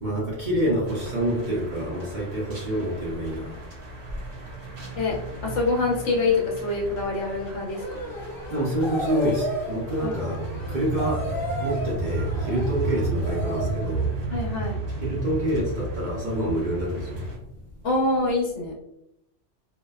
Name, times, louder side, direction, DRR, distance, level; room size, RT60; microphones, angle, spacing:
voice 1, 0.0-3.5 8.5-10.4 10.7-11.3 11.6-14.1 15.0-17.1, right 1 dB, 50° right, -5 dB, 0.6 m, -27 dB
sound 1, 0.9-17.4, right 2 dB, 70° right, 1.2 m, -33 dB
voice 2, 5.4-8.0 10.0-10.2 14.3-14.8 17.8-18.7, left 3 dB, 75° left, -2 dB, 1.1 m, -25 dB
sound 2, 7.7-13.9, equal, 50° left, 0.9 m, -33 dB
2.6 x 2.1 x 2.2 m, 0.81 s
omnidirectional pair, 1.2 m